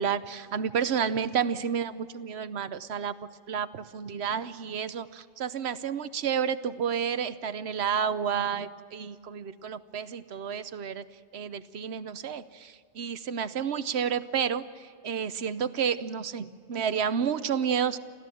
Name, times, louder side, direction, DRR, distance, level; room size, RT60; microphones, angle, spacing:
voice 1, 0.0-3.1 3.5-11.0 11.3-14.6 15.0-18.0, right 7 dB, 65° right, 13 dB, 1.1 m, -30 dB
29.5 x 13.5 x 7.7 m, 2.2 s
omnidirectional pair, 1.2 m